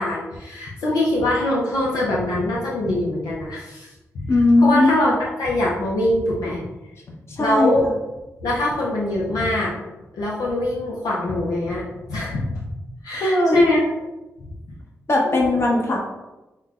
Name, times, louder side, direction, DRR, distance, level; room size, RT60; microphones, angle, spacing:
voice 1, 0.0-3.9 4.1-4.3 4.6-5.1 5.4-6.7 7.4-7.8 8.4-9.7 10.1-11.8 12.1-12.6 13.0-13.8 14.4-14.5 15.2-15.4, left 1 dB, 85° left, -4 dB, 0.6 m, -23 dB
voice 2, 4.3-4.9 7.3-7.7 13.1-13.6 15.1-16.1, left 2 dB, 45° left, -1 dB, 1.0 m, -18 dB
5.5 x 2.2 x 2.4 m, 1.1 s
supercardioid pair, 50°, 6 cm